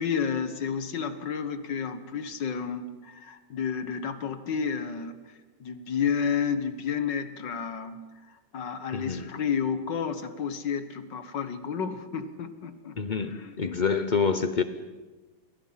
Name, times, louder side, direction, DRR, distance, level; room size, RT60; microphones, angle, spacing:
voice 1, 0.0-5.2 5.6-8.0 8.5-13.6, left 6 dB, 65° left, 10 dB, 2.0 m, -31 dB
voice 2, 8.9-9.3 13.0-14.6, left 5 dB, 80° left, 11 dB, 0.4 m, -27 dB
28.0 x 22.5 x 5.8 m, 1.3 s
omnidirectional pair, 2.1 m